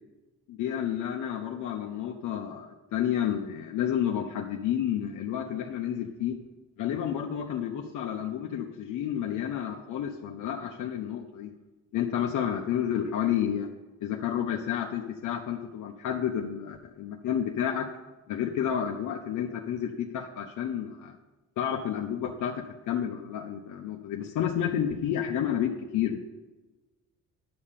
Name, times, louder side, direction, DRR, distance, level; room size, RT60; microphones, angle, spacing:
voice 1, 0.5-6.4 6.8-11.5 11.9-13.7 14.0-17.9 18.3-21.2 21.6-26.2, left 9 dB, 80° left, 1 dB, 0.9 m, -30 dB
11.0 x 5.6 x 6.8 m, 1.1 s
cardioid pair, 90°, 30 cm